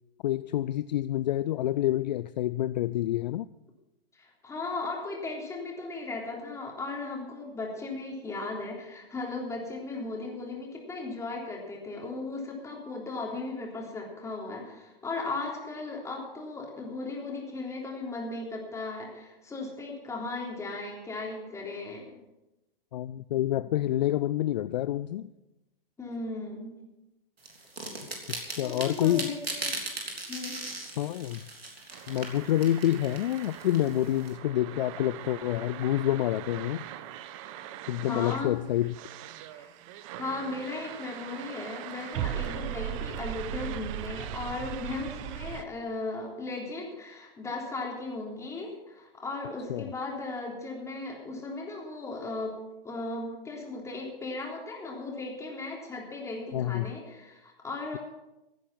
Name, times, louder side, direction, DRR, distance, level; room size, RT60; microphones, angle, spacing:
voice 1, 0.2-3.5 22.9-25.3 28.3-29.3 31.0-31.4 32.1-36.9 37.9-38.9 49.7-49.9 56.5-56.9, left 13 dB, 50° left, 16 dB, 0.4 m, -28 dB
voice 2, 4.1-22.2 26.0-26.7 28.6-29.7 30.3-30.6 38.1-38.6 39.5-39.7 40.2-52.6 52.8-58.0, left 3 dB, 10° left, -2 dB, 3.5 m, -36 dB
sound 1, 27.4-34.3, right 2 dB, 85° right, 3.4 m, -38 dB
sound 2, 31.9-45.6, right 11 dB, 35° right, 0.9 m, -39 dB
16.0 x 9.8 x 5.9 m, 0.98 s
figure-of-eight pair, 120°, 29 cm